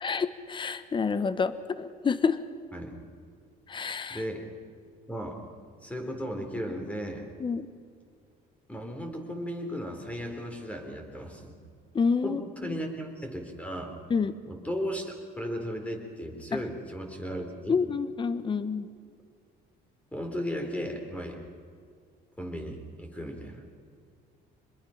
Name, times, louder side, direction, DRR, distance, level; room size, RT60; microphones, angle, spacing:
voice 1, 0.0-2.4 3.7-4.2 7.4-7.7 11.9-12.7 14.1-14.3 16.5-16.6 17.7-18.9, left 5 dB, 30° left, 13 dB, 1.1 m, -28 dB
voice 2, 4.1-4.5 5.1-5.4 5.8-7.3 8.7-11.6 12.2-13.9 14.5-17.8 20.1-21.4 22.4-23.6, equal, 10° left, 3 dB, 3.7 m, -35 dB
25.0 x 21.5 x 5.8 m, 2.2 s
cardioid pair, 110°, 17 cm